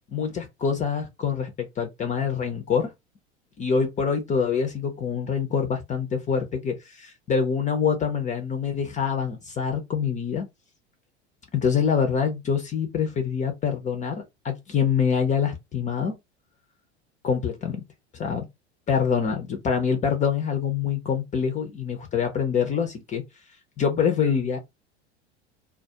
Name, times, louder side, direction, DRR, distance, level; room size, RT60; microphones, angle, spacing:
voice 1, 0.1-2.9 3.6-10.5 11.5-16.1 17.2-17.8 18.1-18.5 18.9-23.2 23.8-24.6, left 6 dB, 20° left, 0.5 m, -25 dB
2.2 x 2.0 x 2.7 m
figure-of-eight pair, 80°, 34 cm